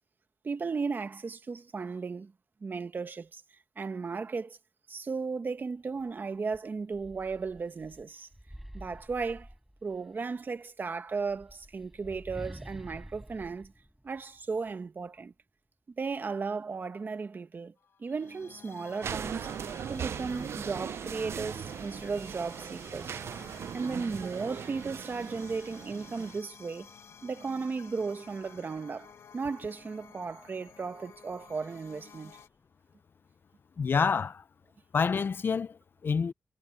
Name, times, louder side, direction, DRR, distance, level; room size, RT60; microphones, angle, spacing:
voice 1, 0.4-2.3 2.6-3.4 3.8-4.6 4.9-8.3 8.7-9.5 9.8-13.7 14.0-15.3 16.0-17.7 18.0-19.5 19.9-23.2 23.7-26.9 27.2-32.4, right 4 dB, 50° right, 1.4 m, -35 dB
sound 1, 6.0-6.1 6.5-10.1 11.1-14.7, equal, 5° right, 5.2 m, -48 dB
sound 2, 17.8-32.5, left 7 dB, 80° left, 1.5 m, -53 dB
sound 3, 19.0-26.4, right 8 dB, 75° right, 0.4 m, -39 dB
voice 2, 33.8-34.4 34.9-36.3, left 5 dB, 55° left, 0.4 m, -28 dB
cardioid pair, 85°, 4 cm